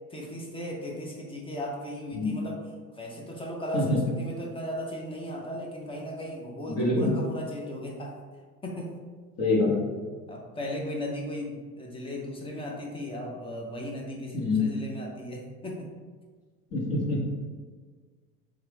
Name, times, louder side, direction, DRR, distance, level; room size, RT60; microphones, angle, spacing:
voice 1, 0.1-2.6 2.9-8.2 8.6-8.9 10.3-15.9, equal, 10° left, -1 dB, 0.6 m, -36 dB
voice 2, 6.7-7.1 9.4-9.9 14.3-14.7 16.7-17.2, left 2 dB, 35° left, -3 dB, 0.8 m, -25 dB
3.5 x 2.8 x 3.2 m, 1.5 s
figure-of-eight pair, 70°, 47 cm